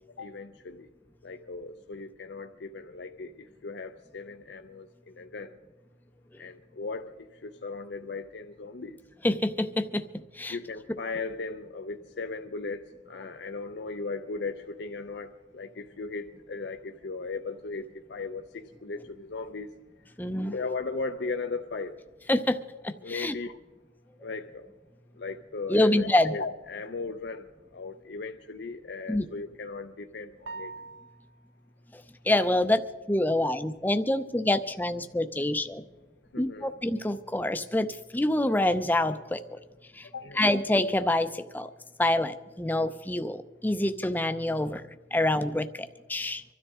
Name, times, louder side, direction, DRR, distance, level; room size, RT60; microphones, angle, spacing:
voice 1, 0.2-0.9 1.2-5.6 6.4-9.0 10.5-19.7 20.5-22.0 23.0-23.6 24.2-24.6 25.2-30.7 36.3-36.7 40.0-40.4, left 3 dB, 60° left, 5 dB, 0.6 m, -37 dB
voice 2, 9.2-10.6 20.2-20.5 22.3-22.6 22.8-23.3 25.7-26.4 29.1-29.3 31.9-32.8 33.1-35.8 36.4-39.6 39.9-40.1 40.4-41.7 42.0-44.8 45.1-46.4, left 1 dB, 10° left, 9 dB, 0.5 m, -26 dB
sound 1, 30.5-31.5, right 3 dB, 65° right, 0.6 m, -42 dB
25.0 x 13.0 x 3.6 m, 1.2 s
head